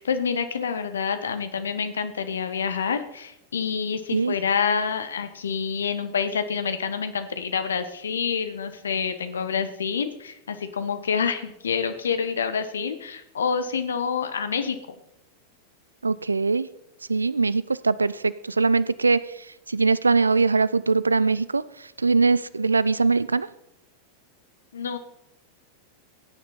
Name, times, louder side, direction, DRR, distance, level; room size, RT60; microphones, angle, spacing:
voice 1, 0.0-14.8 24.7-25.0, left 6 dB, 70° left, 10 dB, 1.3 m, -27 dB
voice 2, 16.0-16.7 17.1-19.2 19.7-23.5, right 4 dB, 80° right, 18 dB, 0.5 m, -22 dB
17.5 x 9.6 x 4.2 m, 0.85 s
figure-of-eight pair, 90°, 0 cm